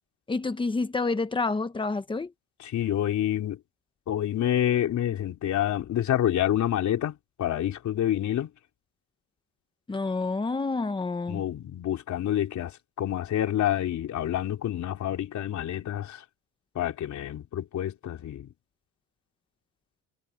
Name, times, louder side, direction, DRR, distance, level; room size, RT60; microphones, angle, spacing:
voice 1, 0.3-2.3 9.9-11.4, left 3 dB, 15° left, 1.0 m, -28 dB
voice 2, 2.6-3.6 4.1-8.5 11.3-16.2 16.7-18.5, left 11 dB, 50° left, 3.4 m, -28 dB
cardioid pair, 175°, 37 cm